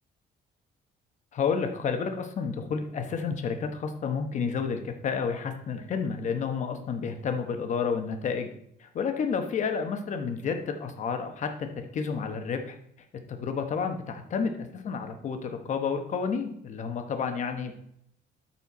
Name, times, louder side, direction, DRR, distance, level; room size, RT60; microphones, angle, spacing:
voice 1, 1.3-8.5 8.8-12.7 13.3-17.7, left 5 dB, 45° left, 6 dB, 1.0 m, -30 dB
13.0 x 4.4 x 4.2 m, 0.72 s
cardioid pair, 175°, 18 cm